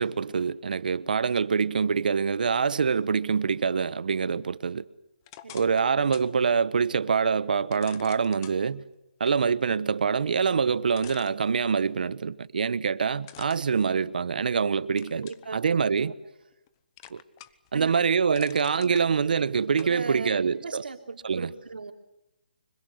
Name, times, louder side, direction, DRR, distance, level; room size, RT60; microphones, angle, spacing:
voice 1, 0.0-4.9 5.5-8.8 9.2-16.1 17.1-17.2 17.7-20.8 21.2-21.5, right 6 dB, 65° right, 1.1 m, -25 dB
sound 1, 5.2-6.3 6.8-6.9 7.7-8.6 10.4-10.5 10.9-12.0 13.2-14.5 15.0-15.5 16.0-16.7 17.0-17.7 18.0-19.1 19.8-20.0, left 13 dB, 25° left, 1.0 m, -48 dB
voice 2, 15.1-15.8 17.7-18.5 18.8-19.1 19.8-21.9, right 4 dB, 85° right, 3.3 m, -38 dB
25.5 x 23.5 x 7.9 m
hypercardioid pair, 165°, 5 cm